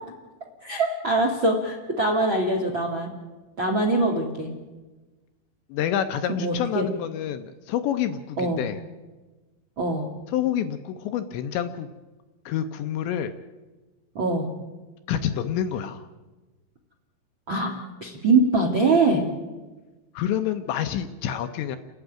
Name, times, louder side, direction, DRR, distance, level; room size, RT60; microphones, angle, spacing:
voice 1, 0.6-3.1 3.6-4.5 6.3-6.9 8.4-8.6 9.8-10.1 14.1-14.5 17.5-17.7 18.0-19.2, right 2 dB, 50° right, 0 dB, 1.4 m, -23 dB
voice 2, 5.7-8.8 10.3-11.9 12.5-13.3 15.1-16.1 20.1-21.8, left 10 dB, 75° left, 8 dB, 2.8 m, -28 dB
30.0 x 11.5 x 9.0 m, 1.2 s
omnidirectional pair, 5.7 m